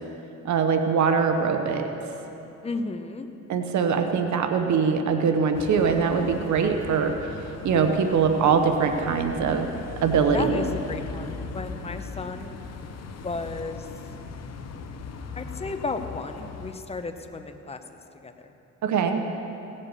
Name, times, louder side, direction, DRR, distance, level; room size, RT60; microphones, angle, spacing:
voice 1, 0.4-1.8 3.5-7.1 7.6-9.7 10.0-10.6 18.8-19.2, right 6 dB, 70° right, 6 dB, 1.0 m, -22 dB
voice 2, 2.6-3.3 10.3-12.6 13.2-13.9 15.4-18.5, left 3 dB, 20° left, 7 dB, 0.9 m, -34 dB
sound 1, 5.5-16.7, left 4 dB, 55° left, 1.0 m, -38 dB
17.5 x 7.6 x 6.7 m, 3.0 s
cardioid pair, 90°, 30 cm